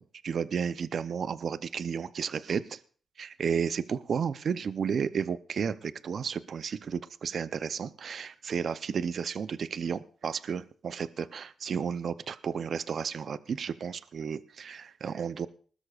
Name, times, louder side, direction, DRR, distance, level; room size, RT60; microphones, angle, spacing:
voice 1, 0.0-2.8 3.2-15.5, right 6 dB, 65° right, 15 dB, 0.6 m, -32 dB
20.0 x 12.5 x 2.4 m, 0.42 s
supercardioid pair, 50°, 0 cm